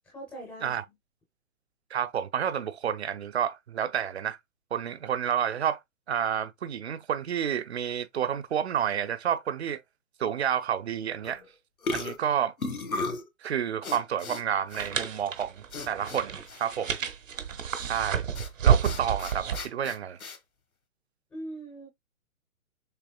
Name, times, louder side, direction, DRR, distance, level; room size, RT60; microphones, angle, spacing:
voice 1, 0.0-0.9 21.3-21.9, right 1 dB, 5° left, 0.5 m, -41 dB
voice 2, 1.9-4.4 4.7-5.8 6.1-9.8 10.2-11.4 11.9-12.5 13.4-17.0 17.9-18.2 18.6-20.2, right 9 dB, 50° right, 0.6 m, -30 dB
sound 1, 11.2-11.5 11.8-13.3 13.8-14.4 14.7-14.9 15.7-16.2 16.5-16.6 18.4-18.5 18.8-20.4, left 3 dB, 80° left, 1.3 m, -35 dB
sound 2, 14.7-19.7, right 8 dB, 65° right, 1.2 m, -29 dB
6.8 x 3.2 x 2.3 m
figure-of-eight pair, 130°, 42 cm